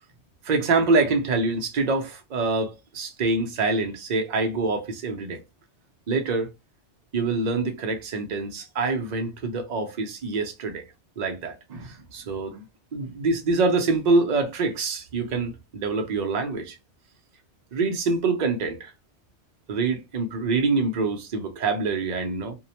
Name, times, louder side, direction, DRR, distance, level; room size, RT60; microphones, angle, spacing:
voice 1, 0.4-5.4 6.1-6.5 7.1-10.8 11.2-12.6 12.9-16.8 17.7-18.9 19.7-22.6, right 3 dB, 50° right, 0.6 m, -25 dB
2.6 x 2.0 x 2.8 m
omnidirectional pair, 1.1 m